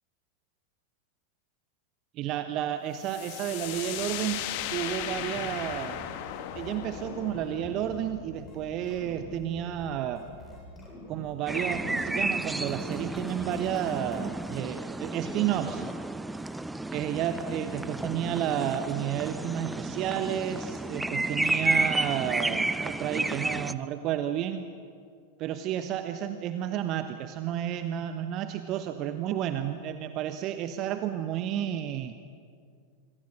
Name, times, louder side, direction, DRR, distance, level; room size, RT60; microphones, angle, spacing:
voice 1, 2.1-6.1 6.4-10.3 11.1-15.9 16.9-24.7 25.4-32.2, right 10 dB, 35° right, 10 dB, 1.0 m, -31 dB
sound 1, 3.0-10.6, left 12 dB, 45° left, 1.5 m, -38 dB
sound 2, 4.6-4.7 5.0-6.0 6.3-7.9 8.4-8.6 8.8-9.9 10.2-11.8 12.2-12.4 12.7-14.2, left 2 dB, 10° left, 7.8 m, -46 dB
sound 3, 11.5-23.7, right 2 dB, 5° right, 0.7 m, -31 dB
25.5 x 25.0 x 6.4 m, 2.2 s
figure-of-eight pair, 90°, 0 cm